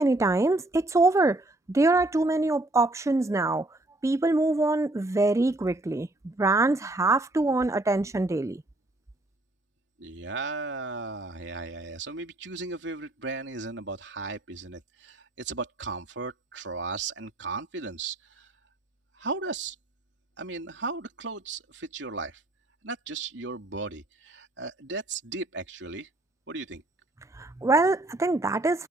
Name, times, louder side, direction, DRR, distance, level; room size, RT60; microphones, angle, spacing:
voice 1, 0.0-1.4 1.7-3.7 4.0-6.1 6.4-8.6 27.4-28.9, right 2 dB, 15° right, 0.3 m, -24 dB
voice 2, 10.0-18.5 19.1-19.7 20.4-22.4 22.8-26.1 26.5-26.8, right 3 dB, 90° right, 3.4 m, -36 dB
head